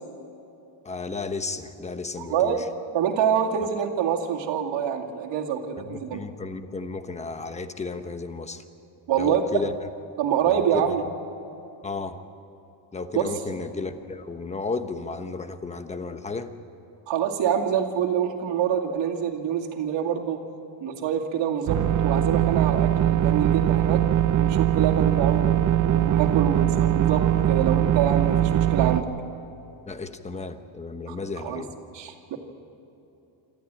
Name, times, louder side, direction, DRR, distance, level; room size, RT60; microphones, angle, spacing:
voice 1, 0.8-2.6 5.8-8.6 9.2-9.7 10.5-10.9 11.8-12.2 12.9-16.5 29.9-31.7, left 4 dB, 15° left, 9 dB, 1.0 m, -33 dB
voice 2, 2.2-2.6 2.9-6.2 9.1-9.4 10.2-11.0 13.1-13.4 17.1-20.4 20.8-24.0 24.3-29.1 31.1-31.2 31.4-31.6 31.9-32.4, right 8 dB, 60° right, 0 dB, 2.5 m, -26 dB
sound 1, 21.7-29.0, right 11 dB, 40° right, 0.6 m, -21 dB
26.5 x 14.0 x 8.9 m, 2.9 s
cardioid pair, 140°, 48 cm